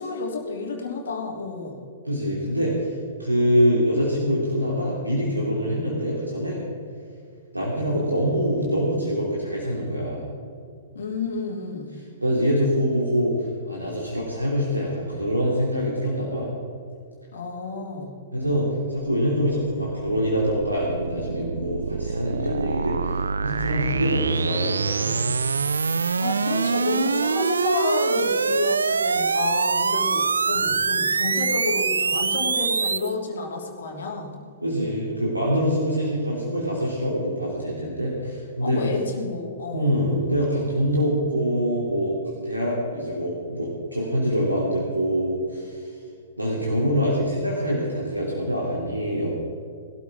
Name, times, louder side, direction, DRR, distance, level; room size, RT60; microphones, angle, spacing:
voice 1, 0.0-1.8 10.9-12.0 17.3-18.1 26.2-34.3 38.6-40.0, left 3 dB, 65° left, 0 dB, 3.1 m, -30 dB
voice 2, 2.0-2.9 3.2-6.6 7.5-10.3 12.2-13.3 13.6-16.5 18.3-25.3 30.5-30.7 34.6-38.8 39.7-42.1 42.4-45.9 46.4-49.3, equal, 90° right, -4 dB, 3.0 m, -25 dB
sound 1, 19.0-33.1, right 5 dB, 75° right, 0.4 m, -25 dB
21.0 x 12.5 x 3.7 m, 2.3 s
figure-of-eight pair, 110°, 0 cm